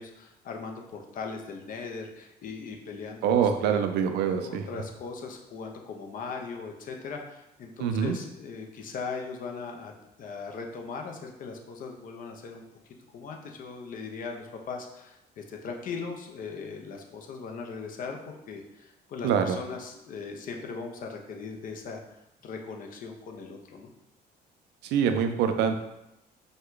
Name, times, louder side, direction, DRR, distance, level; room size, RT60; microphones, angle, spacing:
voice 1, 0.0-3.8 4.2-9.9 10.2-23.9, left 4 dB, 55° left, 2 dB, 0.7 m, -39 dB
voice 2, 3.2-4.6 7.8-8.2 19.2-19.6 24.8-25.8, right 7 dB, 85° right, 7 dB, 0.5 m, -25 dB
5.3 x 2.3 x 3.8 m, 0.88 s
cardioid pair, 110°, 17 cm